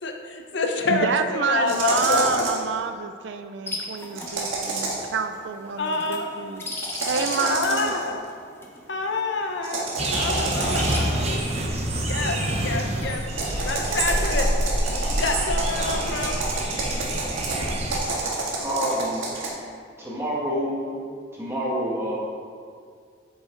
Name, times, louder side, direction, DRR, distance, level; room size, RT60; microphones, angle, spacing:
voice 1, 0.0-2.4 5.8-6.3 7.5-8.2 8.9-11.4 12.0-13.2 13.6-14.5 14.9-16.3, left 3 dB, 60° left, 3 dB, 0.7 m, -27 dB
voice 2, 0.9-6.6 7.1-7.9, right 5 dB, 60° right, 8 dB, 0.4 m, -28 dB
sound 1, 1.7-2.7 4.1-5.1 6.8-8.1 9.6-11.2 13.3-19.5, right 3 dB, 80° right, 1.6 m, -29 dB
sound 2, 3.7-14.7, left 2 dB, 10° left, 0.7 m, -40 dB
sound 3, 10.0-18.0, right 1 dB, 30° right, 0.8 m, -27 dB
voice 3, 18.5-19.3 20.0-21.0 21.3-22.2, equal, 15° right, -6 dB, 1.7 m, -27 dB
8.1 x 7.1 x 3.9 m, 2.1 s
head